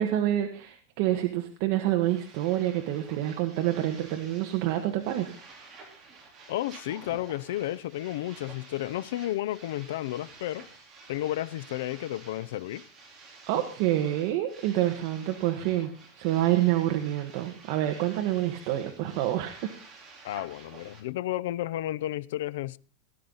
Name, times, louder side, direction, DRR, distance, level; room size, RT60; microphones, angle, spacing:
voice 1, 0.0-5.3 13.5-19.7, right 13 dB, 50° right, 1.4 m, -27 dB
sound 1, 1.9-21.0, right 4 dB, 20° right, 3.5 m, -51 dB
voice 2, 6.5-10.7 11.1-12.8 20.2-22.8, left 14 dB, 75° left, 0.5 m, -32 dB
18.0 x 10.5 x 4.0 m
supercardioid pair, 160°, 0 cm